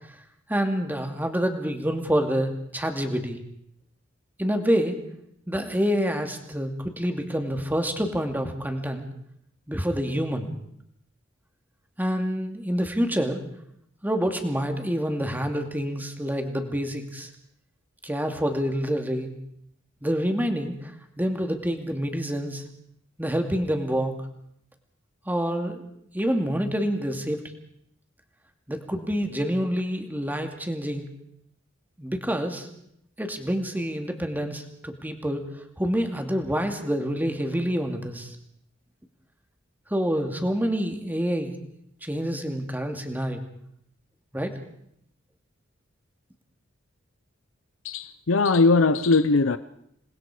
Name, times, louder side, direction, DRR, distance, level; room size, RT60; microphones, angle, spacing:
voice 1, 0.5-3.4 4.4-5.0 5.5-9.1 9.7-10.5 12.0-13.4 14.0-17.3 18.0-19.3 20.0-20.9 21.2-22.6 23.2-24.1 25.3-25.8 26.1-27.4 28.7-31.1 32.0-32.7 33.2-35.4 35.8-38.4 39.9-41.5 42.0-43.4 44.3-44.6, equal, 10° right, 2.5 m, -27 dB
voice 2, 47.8-49.6, left 3 dB, 90° left, 0.8 m, -20 dB
28.0 x 20.5 x 5.0 m
head